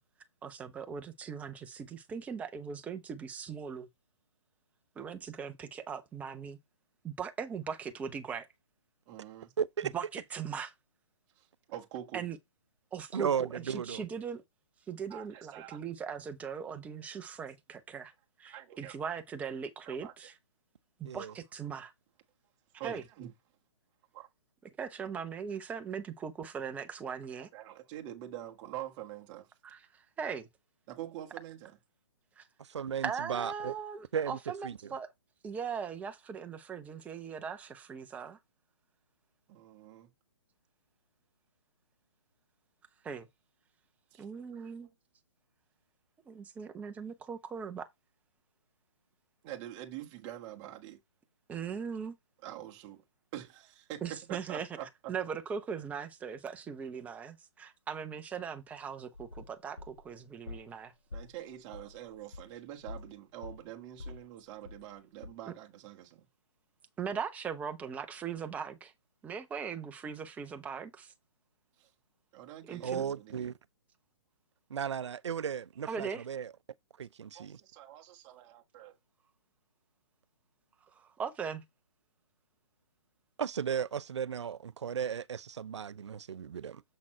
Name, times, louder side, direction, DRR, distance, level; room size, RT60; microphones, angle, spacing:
voice 1, 0.4-3.9 5.0-6.6 7.0-8.5 9.8-10.7 12.1-12.4 12.9-14.4 14.9-18.1 18.4-20.3 21.0-21.9 22.8-23.0 24.8-27.5 29.6-29.8 30.2-30.5 32.4-32.5 33.0-35.1 35.4-38.4 43.0-43.3 44.2-44.9 46.3-47.9 51.5-52.1 54.0-54.7 55.1-60.9 65.5-65.6 67.0-68.9 69.2-71.1 72.6-73.0 75.8-76.2 80.9-81.6, right 6 dB, 10° right, 0.8 m, -39 dB
voice 2, 9.1-9.5 11.4-12.2 15.1-15.8 18.5-19.1 19.8-20.1 22.8-23.3 24.1-24.3 27.5-29.5 30.9-31.8 39.5-40.1 44.1-44.2 44.5-44.9 49.4-51.0 52.4-53.0 53.3-55.1 61.1-66.3 71.8-71.9 72.3-73.5 77.3-79.0, right 12 dB, 25° right, 1.4 m, -45 dB
voice 3, 9.6-9.9 13.1-14.0 21.0-21.3 32.7-33.7 34.1-34.4 34.6-34.7 72.8-73.5 74.7-76.5 77.0-77.6 83.4-86.8, right 7 dB, 75° right, 0.6 m, -35 dB
sound 1, 59.1-60.8 61.1-63.2 63.4-65.0 65.2-65.3, left 3 dB, 90° left, 3.7 m, -46 dB
7.6 x 4.1 x 4.4 m
hypercardioid pair, 145°, 15 cm